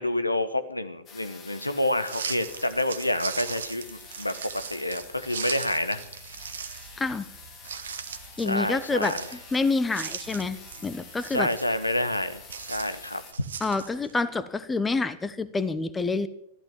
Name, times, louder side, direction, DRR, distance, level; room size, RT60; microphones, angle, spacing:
voice 1, 0.0-4.3 4.7-6.0 8.4-9.2 11.3-13.2, left 1 dB, 90° left, 11 dB, 1.0 m, -28 dB
sound 1, 1.1-13.3, left 6 dB, 30° left, 2.2 m, -48 dB
sound 2, 2.0-14.2, right 7 dB, 65° right, 1.0 m, -40 dB
voice 2, 7.0-7.3 8.4-10.6 10.8-11.5 13.6-16.3, left 3 dB, 10° left, 14 dB, 0.9 m, -27 dB
14.0 x 12.0 x 7.3 m, 0.72 s
figure-of-eight pair, 95°, 0 cm